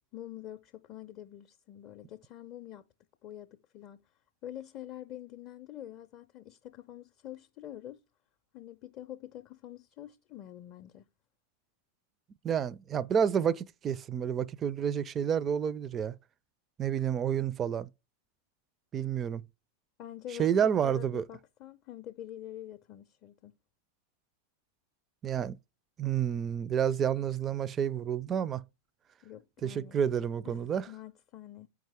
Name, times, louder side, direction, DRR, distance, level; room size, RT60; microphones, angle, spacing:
voice 1, 0.1-2.9 3.2-4.0 4.4-8.0 8.5-11.1 20.0-23.6 29.2-30.0 30.4-31.7, left 12 dB, 40° left, 0.5 m, -46 dB
voice 2, 12.4-16.1 16.8-17.9 18.9-19.4 20.4-21.3 25.2-25.6 26.0-28.6 29.6-30.9, right 8 dB, 25° right, 0.4 m, -29 dB
9.1 x 4.8 x 3.5 m
figure-of-eight pair, 90°, 0 cm